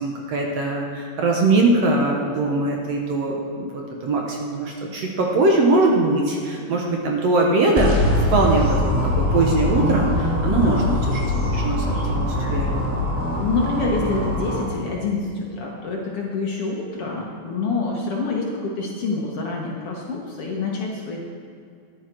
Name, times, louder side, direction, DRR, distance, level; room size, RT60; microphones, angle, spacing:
voice 1, 0.0-8.0 8.3-10.8 11.1-11.2 11.5-12.9, right 2 dB, 60° right, 0 dB, 2.1 m, -21 dB
sound 1, 7.8-14.6, left 1 dB, 5° right, 1.7 m, -22 dB
voice 2, 10.4-11.0 13.3-21.2, left 3 dB, 55° left, -2 dB, 1.9 m, -27 dB
13.5 x 10.5 x 4.6 m, 2.3 s
omnidirectional pair, 3.7 m